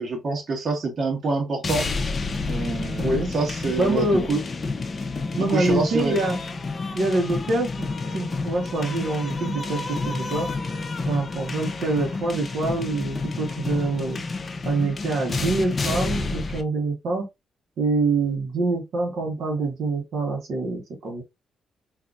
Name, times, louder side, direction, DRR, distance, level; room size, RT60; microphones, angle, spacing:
voice 1, 0.0-1.9 2.5-4.4 5.3-6.2, right 3 dB, 45° right, 1.3 m, -26 dB
sound 1, 1.6-16.6, left 3 dB, 35° left, 0.6 m, -30 dB
voice 2, 3.0-3.3 3.8-4.3 5.3-6.4 6.9-10.5 11.1-14.2 14.6-17.2 17.8-21.2, right 2 dB, 70° right, 1.1 m, -25 dB
3.8 x 2.7 x 2.4 m
cardioid pair, 115°, 0 cm